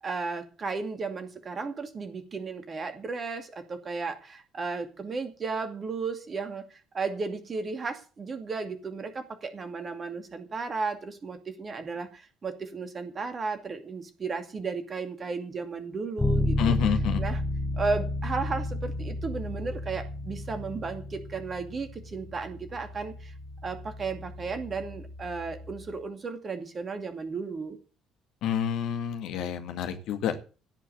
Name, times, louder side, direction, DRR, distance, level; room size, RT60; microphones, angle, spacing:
voice 1, 0.0-17.4 17.8-23.3 23.6-27.8, right 4 dB, 35° right, 9 dB, 2.5 m, -34 dB
Bass guitar, 16.2-26.0, left 1 dB, 15° left, 2.7 m, -32 dB
voice 2, 16.6-17.2 28.4-30.4, left 9 dB, 60° left, 6 dB, 2.0 m, -28 dB
17.0 x 6.0 x 8.3 m, 0.36 s
figure-of-eight pair, 50°, 0 cm